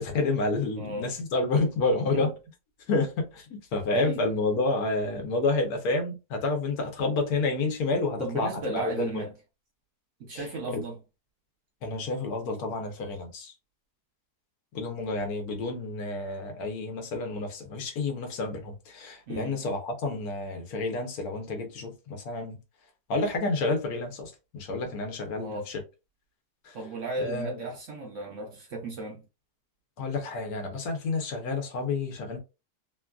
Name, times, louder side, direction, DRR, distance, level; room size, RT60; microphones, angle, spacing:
voice 1, 0.0-2.3 2.9-9.2 10.3-10.5 10.7-10.8 11.8-13.5 14.7-22.6 23.1-25.8 26.6-26.8 27.2-27.7 30.0-32.4, left 3 dB, 70° left, 1.2 m, -29 dB
voice 2, 0.8-1.1 2.1-2.3 3.9-4.2 8.2-9.3 10.2-11.0 19.3-19.5 25.4-25.7 26.7-29.2, right 2 dB, 60° right, 0.9 m, -35 dB
3.0 x 2.4 x 2.2 m
omnidirectional pair, 1.7 m